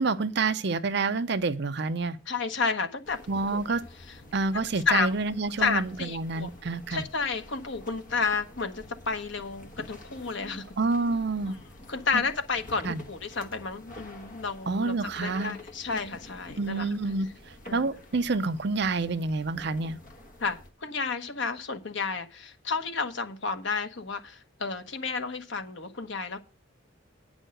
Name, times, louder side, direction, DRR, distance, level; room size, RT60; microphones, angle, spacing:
voice 1, 0.0-2.2 3.3-3.8 4.3-7.0 10.8-11.6 12.8-13.0 14.7-15.5 16.6-20.0, right 3 dB, 55° right, 0.6 m, -28 dB
voice 2, 2.3-3.2 3.5-3.6 4.9-5.1 5.6-6.5 6.9-10.6 11.9-16.9 17.7-17.9 20.4-26.4, left 4 dB, 60° left, 1.1 m, -31 dB
sound 1, 3.0-20.7, left 1 dB, 40° left, 1.2 m, -48 dB
9.1 x 6.2 x 6.4 m
head